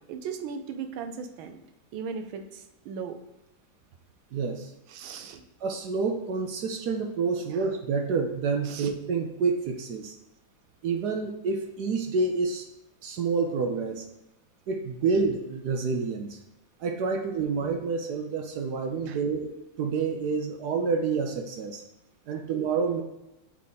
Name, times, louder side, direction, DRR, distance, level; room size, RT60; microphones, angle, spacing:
voice 1, 0.0-1.6 1.9-3.2 4.9-5.4 7.5-7.6 8.7-8.9 19.1-19.2 22.3-22.5, right 6 dB, 90° right, 7 dB, 1.5 m, -37 dB
voice 2, 4.3-4.7 5.6-10.1 10.8-12.7 13.0-14.0 14.7-16.4 16.8-19.5 19.8-21.8 22.3-23.0, right 4 dB, 70° right, 4 dB, 1.0 m, -28 dB
7.3 x 3.6 x 4.0 m, 0.95 s
omnidirectional pair, 2.1 m